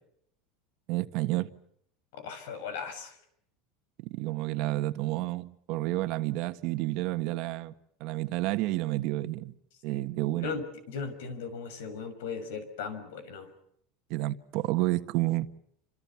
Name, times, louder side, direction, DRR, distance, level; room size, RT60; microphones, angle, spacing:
voice 1, 0.9-1.5 4.0-7.7 8.0-9.5 9.8-10.5 14.1-15.5, right 18 dB, 55° right, 1.5 m, -30 dB
voice 2, 2.1-3.1 10.4-13.5, left 5 dB, 90° left, 6.3 m, -37 dB
29.5 x 27.0 x 5.9 m
supercardioid pair, 150°, 0 cm